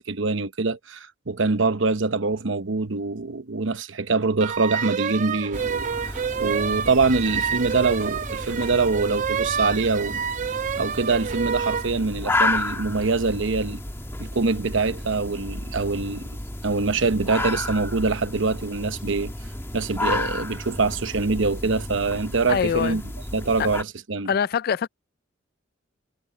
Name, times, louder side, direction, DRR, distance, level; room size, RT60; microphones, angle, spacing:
voice 1, 0.0-10.2 10.8-13.8 14.2-16.3 16.6-19.3 19.7-23.0 23.3-24.3, right 3 dB, 70° right, 1.0 m, -24 dB
sound 1, 4.4-11.9, right 7 dB, 40° right, 0.4 m, -28 dB
sound 2, 5.5-23.8, left 2 dB, 15° left, 1.6 m, -32 dB
voice 2, 22.5-23.0 23.6-23.7 24.3-24.9, left 7 dB, 50° left, 0.3 m, -24 dB
head